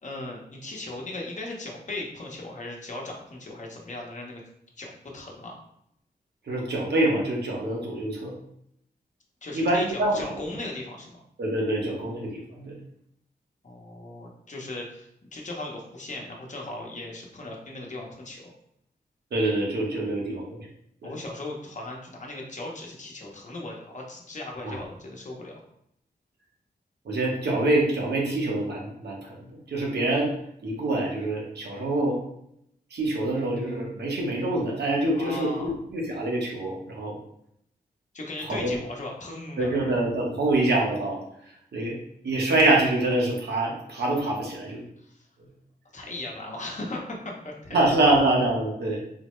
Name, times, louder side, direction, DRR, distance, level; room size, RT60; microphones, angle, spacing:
voice 1, 0.0-4.4 4.8-5.6 9.4-11.2 13.6-18.5 21.0-25.6 35.1-35.7 38.1-40.0 45.0-45.3 45.9-47.8, left 2 dB, 45° left, -1 dB, 0.8 m, -37 dB
voice 2, 6.5-8.3 9.5-10.2 11.4-12.8 19.3-20.7 21.0-21.2 24.6-24.8 27.0-30.3 30.6-32.2 32.9-37.1 38.5-38.8 39.6-41.2 41.7-42.0 42.2-44.8 47.7-49.0, right 2 dB, 85° right, -2 dB, 0.9 m, -25 dB
4.0 x 2.0 x 3.1 m, 0.74 s
wide cardioid pair, 90°, 17 cm